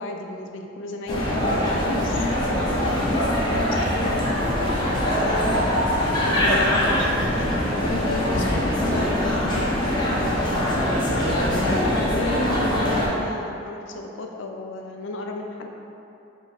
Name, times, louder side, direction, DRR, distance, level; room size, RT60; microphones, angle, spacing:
voice 1, 0.0-4.5 6.3-10.6 11.5-15.7, left 3 dB, 75° left, 2 dB, 0.4 m, -34 dB
sound 1, 1.1-13.1, left 1 dB, 25° left, 0.6 m, -22 dB
5.0 x 3.0 x 2.4 m, 2.8 s
head